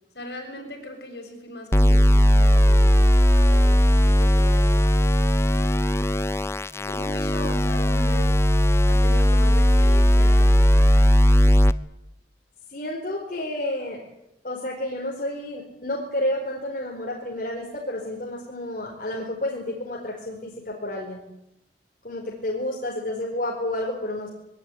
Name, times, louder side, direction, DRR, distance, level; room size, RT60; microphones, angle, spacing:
voice 1, 0.1-6.2 6.6-8.4 8.9-11.5, left 1 dB, 70° left, 3 dB, 7.4 m, -39 dB
sound 1, 1.7-11.7, equal, 15° left, 0.8 m, -18 dB
voice 2, 12.7-14.0 14.4-21.2 22.0-24.3, left 1 dB, 50° left, -1 dB, 4.5 m, -30 dB
22.0 x 18.5 x 9.9 m, 0.85 s
head